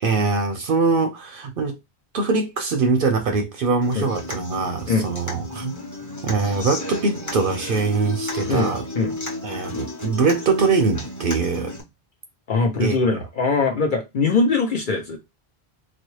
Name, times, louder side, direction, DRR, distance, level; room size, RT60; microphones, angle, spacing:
voice 1, 0.0-1.8 2.1-5.7 6.2-8.9 9.4-11.8 12.8-13.2, right 4 dB, 65° right, 0.7 m, -22 dB
Human voice / Acoustic guitar, 3.8-11.8, left 2 dB, 20° left, 0.8 m, -33 dB
voice 2, 12.5-15.2, left 4 dB, 55° left, 0.8 m, -21 dB
4.0 x 2.1 x 3.1 m
omnidirectional pair, 1.1 m